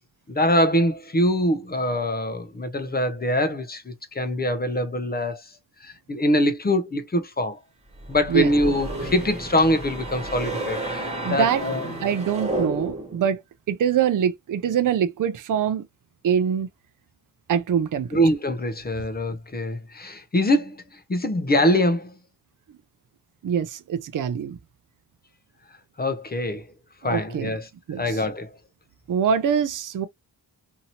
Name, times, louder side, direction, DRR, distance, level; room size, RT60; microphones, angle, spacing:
voice 1, 0.3-5.4 5.8-7.6 8.1-11.0 11.3-11.9 18.1-20.8 21.1-22.1 26.0-26.6 27.0-27.7 28.0-28.5, left 1 dB, 25° left, 0.6 m, -23 dB
sound 1, 8.0-13.2, right 1 dB, 15° right, 1.4 m, -31 dB
voice 2, 11.2-11.6 12.0-13.4 13.7-15.8 16.2-16.7 17.5-18.2 23.4-24.6 27.0-27.5 27.9-28.2 29.1-30.1, right 8 dB, 50° right, 0.5 m, -24 dB
2.8 x 2.7 x 2.8 m
wide cardioid pair, 135°, 42 cm